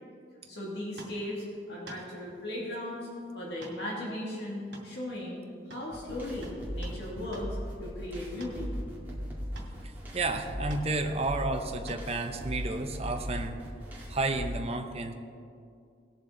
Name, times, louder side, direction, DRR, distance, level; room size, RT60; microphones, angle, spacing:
voice 1, 0.5-3.1 3.3-5.4 5.7-7.5 7.8-8.7, left 1 dB, 65° left, -4 dB, 2.3 m, -37 dB
sound 1, 1.0-1.2 1.9-2.0 3.6-3.8 4.1-4.2 4.7-5.4 5.7-5.9 6.4-7.0 7.3-7.5 8.4-8.6 9.6-9.8 10.7-10.9 11.9-12.1 13.8-13.9, right 2 dB, 70° right, 2.5 m, -48 dB
sound 2, 5.9-14.5, equal, 10° right, 2.1 m, -39 dB
voice 2, 10.1-13.6 14.1-15.1, right 2 dB, 35° right, 5 dB, 0.8 m, -31 dB
19.0 x 6.8 x 3.9 m, 2.4 s
head